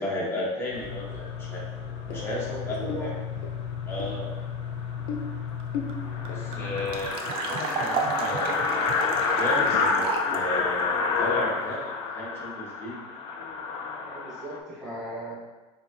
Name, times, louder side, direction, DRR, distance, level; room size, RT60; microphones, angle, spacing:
voice 1, 0.0-1.6 2.1-3.1 3.8-4.3 6.2-8.6 9.4-13.0, left 1 dB, 15° left, -5 dB, 0.9 m, -34 dB
sound 1, 0.7-7.1, left 7 dB, 75° left, 0.7 m, -34 dB
voice 2, 2.1-3.1 6.0-6.2 13.9-15.3, right 1 dB, 5° right, -12 dB, 1.3 m, -38 dB
sound 2, 4.7-4.8 5.1-5.2 5.5-5.6 5.9-14.6, left 5 dB, 35° left, 0.3 m, -28 dB
sound 3, 5.6-5.7 5.9-6.0 6.2-10.4, right 4 dB, 35° right, 0.4 m, -31 dB
4.8 x 2.6 x 2.6 m, 1.2 s
cardioid pair, 175°, 15 cm